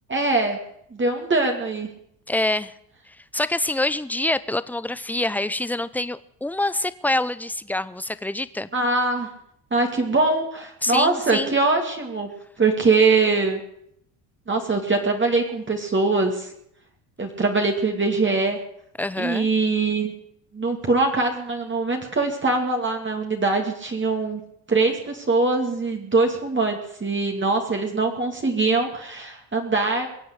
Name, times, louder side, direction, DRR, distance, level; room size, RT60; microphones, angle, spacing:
voice 1, 0.1-0.6 0.9-1.9 8.7-9.3 9.7-12.3 12.6-13.6 14.5-16.5 17.2-18.6 19.2-20.1 20.5-24.4 24.7-30.1, right 3 dB, 25° right, 2 dB, 2.5 m, -22 dB
voice 2, 2.3-2.7 3.3-8.7 10.8-11.5 19.0-19.5, left 2 dB, 5° left, 16 dB, 0.7 m, -26 dB
22.5 x 7.9 x 8.1 m, 0.72 s
supercardioid pair, 90°, 48 cm